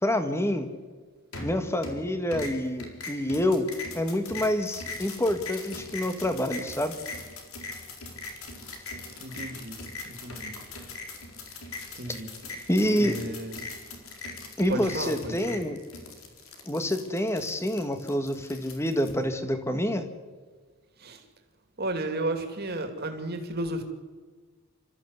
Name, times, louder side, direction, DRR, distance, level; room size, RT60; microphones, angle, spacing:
voice 1, 0.0-0.7 1.4-3.7 3.9-7.0 12.7-13.2 14.6-15.8 16.7-20.1, left 1 dB, 10° left, 8 dB, 1.6 m, -27 dB
sound 1, 1.3-2.0 2.3-19.1, left 3 dB, 70° left, 4.0 m, -40 dB
voice 2, 9.2-9.8 10.0-10.6 12.0-12.3 13.0-13.5 14.7-15.6 21.0-21.2 21.8-23.8, right 1 dB, 45° right, 6 dB, 2.6 m, -33 dB
28.0 x 14.0 x 8.2 m, 1.5 s
head